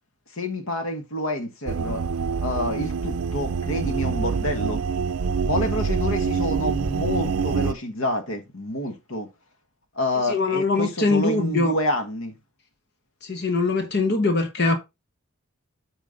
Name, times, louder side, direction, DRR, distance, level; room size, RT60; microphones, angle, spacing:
voice 1, 0.4-2.0 2.4-4.8 5.4-9.3 9.9-12.4, left 1 dB, 65° left, 1.4 m, -28 dB
sound 1, 1.7-7.7, right 5 dB, 80° right, 0.5 m, -26 dB
voice 2, 10.2-11.7 13.2-14.8, left 3 dB, 50° left, 1.2 m, -22 dB
8.7 x 5.1 x 3.9 m
head